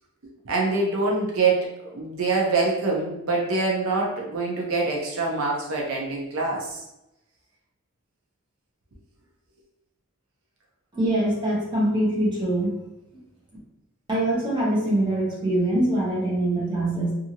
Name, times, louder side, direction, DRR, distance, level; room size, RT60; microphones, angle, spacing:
voice 1, 0.4-6.8, right 3 dB, 75° right, -1 dB, 0.6 m, -25 dB
voice 2, 10.9-12.7 14.1-17.1, right 1 dB, 20° right, -5 dB, 0.8 m, -23 dB
2.6 x 2.4 x 2.8 m, 0.90 s
head